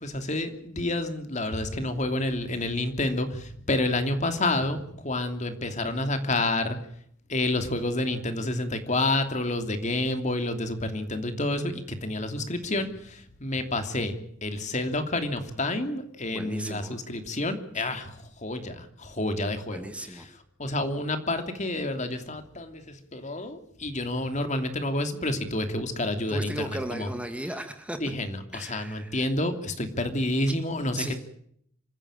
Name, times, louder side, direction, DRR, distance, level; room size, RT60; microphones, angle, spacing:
voice 1, 0.0-6.8 7.3-14.1 14.4-20.2 20.6-27.1 28.0-31.2, left 2 dB, 35° left, 7 dB, 2.9 m, -29 dB
voice 2, 16.3-17.0 19.7-20.3 26.3-28.0 28.5-29.3 31.0-31.2, right 1 dB, 5° right, 7 dB, 2.0 m, -36 dB
27.0 x 15.5 x 8.9 m, 0.67 s
head